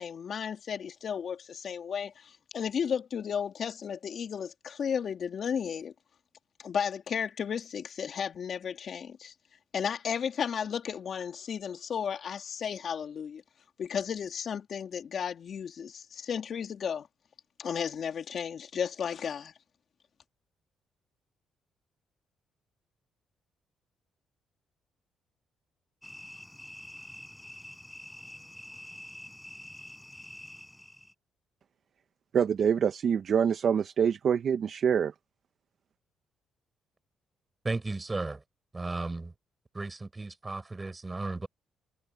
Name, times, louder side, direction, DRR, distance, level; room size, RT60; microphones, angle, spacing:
voice 1, 0.0-5.9 6.6-9.3 9.7-13.4 13.8-17.1 17.6-19.5, left 7 dB, 55° left, 3.1 m, -34 dB
sound 1, 26.0-31.1, left 1 dB, 5° left, 5.8 m, -47 dB
voice 2, 32.3-35.1, right 7 dB, 55° right, 1.1 m, -25 dB
voice 3, 37.6-38.4 38.7-39.3 39.7-41.5, right 3 dB, 20° right, 7.6 m, -34 dB
cardioid pair, 90°, 0 cm